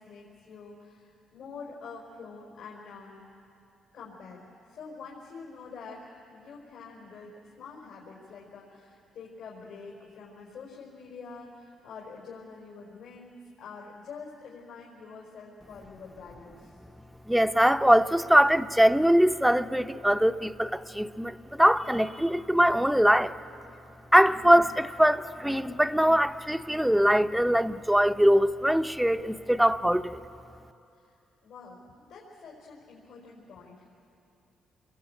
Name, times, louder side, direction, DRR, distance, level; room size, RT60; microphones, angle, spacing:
voice 1, 0.0-3.3 3.9-16.8 30.9-31.2 31.4-31.8 32.1-33.8, left 4 dB, 80° left, 4.5 m, -46 dB
voice 2, 17.3-23.3 24.1-30.2, equal, 5° right, 0.7 m, -22 dB
28.0 x 22.5 x 8.5 m
cardioid pair, 90°, 0 cm